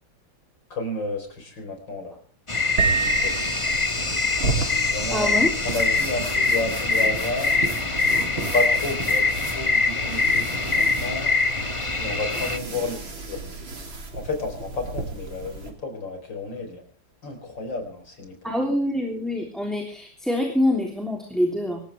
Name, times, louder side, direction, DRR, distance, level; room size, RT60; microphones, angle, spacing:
voice 1, 0.7-2.2 2.7-3.4 4.5-5.4 5.6-7.5 8.3-11.3 12.0-13.4 14.1-16.8 17.2-18.5, left 2 dB, 60° left, 5 dB, 4.9 m, -31 dB
sound 1, 2.5-12.6, left 4 dB, 20° left, 1.1 m, -24 dB
Piano, 2.8-4.2, right 6 dB, 30° right, 1.8 m, -26 dB
sound 2, 2.8-15.7, right 3 dB, 65° right, 4.1 m, -34 dB
voice 2, 5.1-5.5 18.4-21.8, left 1 dB, ahead, 1 dB, 3.1 m, -25 dB
26.0 x 14.0 x 3.5 m, 0.41 s
omnidirectional pair, 2.3 m